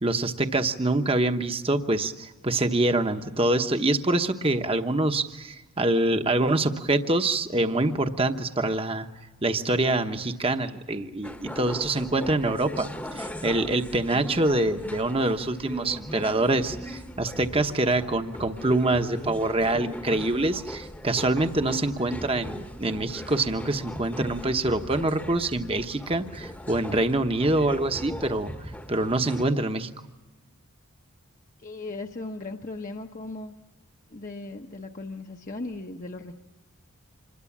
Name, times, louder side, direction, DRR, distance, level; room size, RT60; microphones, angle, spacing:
voice 1, 0.0-9.1 9.4-12.9 13.1-28.5 28.9-29.9, right 2 dB, 25° right, 7 dB, 1.0 m, -25 dB
sound 1, 11.2-29.4, equal, 10° left, 1.1 m, -39 dB
voice 2, 31.6-33.5 34.1-36.3, left 2 dB, 35° left, 3 dB, 0.9 m, -37 dB
26.5 x 21.5 x 7.3 m, 1.2 s
head